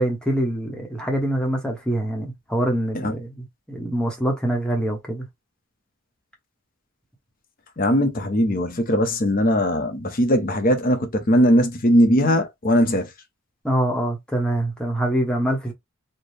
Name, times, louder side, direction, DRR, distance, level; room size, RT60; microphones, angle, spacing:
voice 1, 0.0-5.2 13.6-15.7, right 1 dB, 5° left, 1.0 m, -24 dB
voice 2, 7.8-13.1, equal, 45° left, 0.9 m, -19 dB
4.4 x 2.3 x 3.3 m
head